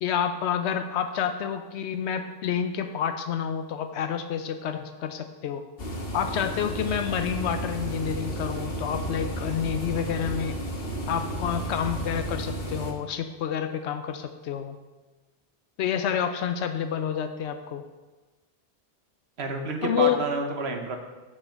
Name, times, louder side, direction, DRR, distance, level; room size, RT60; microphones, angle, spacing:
voice 1, 0.0-5.6 6.1-10.5 11.1-14.8 15.8-17.8 19.8-20.2, left 8 dB, 90° left, 8 dB, 0.9 m, -29 dB
sound 1, 5.8-12.9, right 1 dB, 60° left, 1.3 m, -33 dB
voice 2, 19.4-21.0, right 3 dB, 75° right, 4 dB, 1.3 m, -29 dB
7.2 x 5.6 x 6.3 m, 1.2 s
omnidirectional pair, 1.1 m